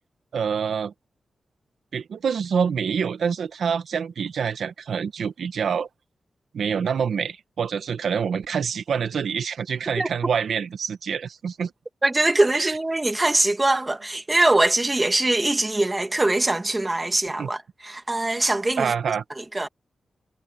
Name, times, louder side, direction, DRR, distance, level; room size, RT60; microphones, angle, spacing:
voice 1, 0.3-0.9 1.9-5.9 6.5-11.7 12.5-12.8 17.4-17.5 18.8-19.2, right 6 dB, 80° right, 1.5 m, -26 dB
voice 2, 12.0-18.9 19.4-19.7, right 2 dB, 15° right, 2.0 m, -22 dB
wide cardioid pair, 145°, 0 cm